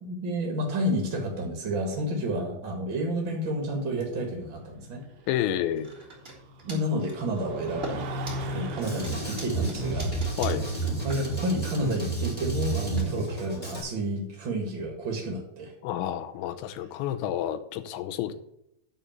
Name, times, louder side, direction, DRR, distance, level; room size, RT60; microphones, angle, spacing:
voice 1, 0.0-5.0 6.6-10.1 11.0-15.7, equal, 85° right, 1 dB, 1.0 m, -30 dB
sound 1, 3.3-13.9, equal, 65° right, 1.8 m, -41 dB
voice 2, 5.3-5.9 10.4-10.6 15.8-18.3, left 11 dB, 90° left, 10 dB, 3.1 m, -29 dB
sound 2, 5.8-6.3 6.6-7.4 7.8-14.2, right 2 dB, 15° right, 2.4 m, -42 dB
Drum kit, 8.8-13.8, right 3 dB, 10° left, 1.8 m, -31 dB
11.0 x 4.1 x 7.3 m, 0.79 s
omnidirectional pair, 5.2 m